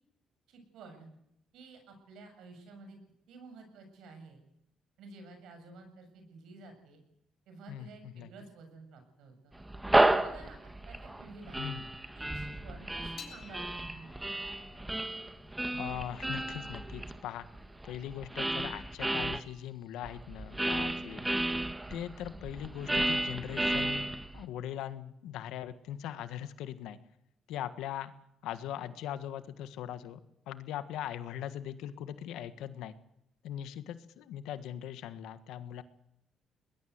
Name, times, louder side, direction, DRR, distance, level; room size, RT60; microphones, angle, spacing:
voice 1, 0.5-1.1 1.5-3.0 3.3-4.4 5.0-7.0 7.5-9.5 10.1-11.7 12.1-14.1 21.9-22.2 28.7-29.1, right 3 dB, 85° right, 6 dB, 7.2 m, -51 dB
voice 2, 7.7-8.3 11.6-11.9 15.7-17.5 17.8-21.3 21.9-27.0 27.5-28.1 28.4-30.2 30.5-32.9 33.4-35.8, left 11 dB, 90° left, 12 dB, 1.5 m, -40 dB
sound 1, 9.6-19.4 20.0-24.5, right 1 dB, 10° right, 1.6 m, -32 dB
sound 2, 13.2-19.7, left 5 dB, 60° left, 6.5 m, -55 dB
22.5 x 20.5 x 8.0 m, 0.79 s
cardioid pair, 95°, 0 cm